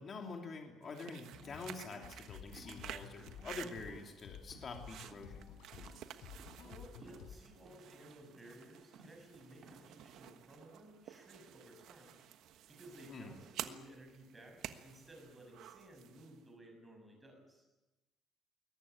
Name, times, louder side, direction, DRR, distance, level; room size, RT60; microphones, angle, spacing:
voice 1, 0.0-5.4 13.1-13.3, left 4 dB, 30° left, 2 dB, 2.9 m, -46 dB
sound 1, 0.8-16.4, right 11 dB, 60° right, 1.3 m, -52 dB
sound 2, 1.3-7.4, left 7 dB, 80° left, 4.7 m, -53 dB
sound 3, 2.0-10.5, right 3 dB, 35° right, 3.2 m, -62 dB
voice 2, 6.4-12.2 12.7-17.6, right 1 dB, 10° right, 2 dB, 6.6 m, -57 dB
21.5 x 19.0 x 9.6 m, 1.1 s
cardioid pair, 175°, 0 cm